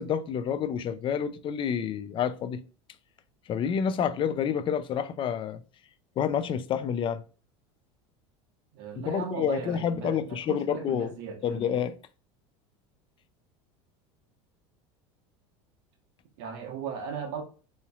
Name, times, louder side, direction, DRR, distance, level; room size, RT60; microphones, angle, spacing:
voice 1, 0.0-2.6 3.5-5.6 6.2-7.2 9.0-11.9, left 8 dB, 35° left, 0.4 m, -29 dB
voice 2, 8.7-11.8 16.4-17.4, right 7 dB, 70° right, 1.2 m, -37 dB
3.9 x 3.1 x 2.4 m
supercardioid pair, 100°, 15 cm